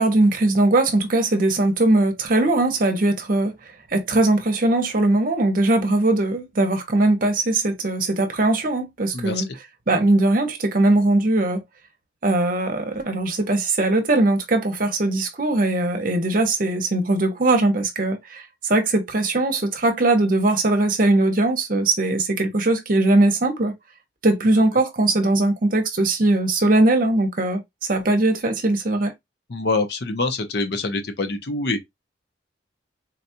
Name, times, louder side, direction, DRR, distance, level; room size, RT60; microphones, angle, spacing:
voice 1, 0.0-3.5 3.9-9.5 9.9-11.6 12.2-23.7 24.2-27.6 27.9-29.1, right 2 dB, 45° right, 0.8 m, -20 dB
voice 2, 9.1-9.4 29.5-31.8, left 3 dB, 60° left, 0.7 m, -25 dB
3.9 x 2.3 x 2.7 m
head